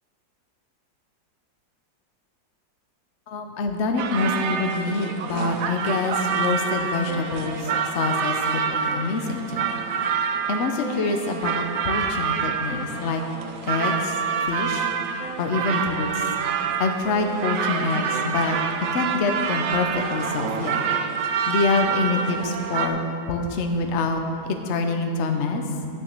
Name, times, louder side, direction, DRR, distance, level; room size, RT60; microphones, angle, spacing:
voice 1, 3.3-7.6 7.9-9.7 10.5-13.2 13.7-14.1 14.4-14.9 15.4-16.1 16.8-18.6 18.9-20.8 21.5-23.0 23.3-24.2 24.7-25.6, left 3 dB, 50° left, 4 dB, 0.9 m, -26 dB
sound 1, 4.0-22.9, right 6 dB, 65° right, 0.8 m, -27 dB
9.3 x 7.0 x 6.6 m, 2.5 s
omnidirectional pair, 2.0 m